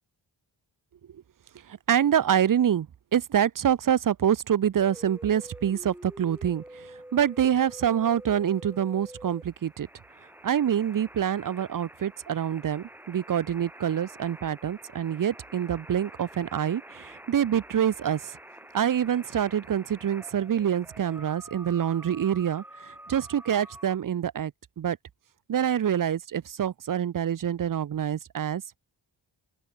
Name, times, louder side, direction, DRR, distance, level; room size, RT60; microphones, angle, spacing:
voice 1, 1.7-9.9 10.4-18.3 18.7-24.5 24.8-25.0 25.5-28.8, right 9 dB, 45° right, 0.5 m, -26 dB
sound 1, 4.8-24.0, right 1 dB, 5° right, 0.8 m, -47 dB
open air
wide cardioid pair, 125°, 49 cm